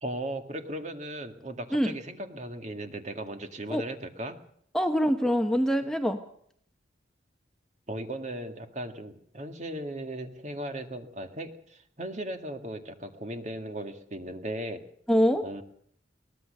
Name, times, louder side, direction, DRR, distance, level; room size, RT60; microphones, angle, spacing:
voice 1, 0.0-4.4 7.9-14.8 15.4-15.6, right 1 dB, 40° right, 6 dB, 2.0 m, -37 dB
voice 2, 4.7-6.2 15.1-15.4, equal, 5° left, 6 dB, 0.9 m, -24 dB
22.5 x 18.5 x 6.6 m, 0.64 s
head